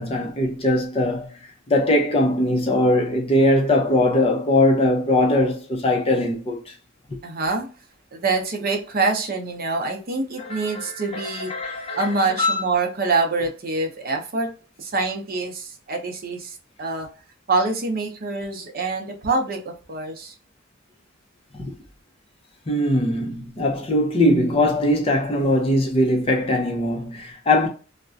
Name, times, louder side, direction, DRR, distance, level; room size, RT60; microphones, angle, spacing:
voice 1, 0.0-1.3 1.7-6.6 10.4-12.1 12.4-12.6 21.5-21.7 22.7-27.7, left 1 dB, 30° left, 0.5 m, -21 dB
voice 2, 7.2-7.7 8.1-11.5 12.0-14.5 14.8-17.1 17.5-20.3, right 3 dB, 45° right, 0.5 m, -25 dB
2.3 x 2.1 x 2.5 m
head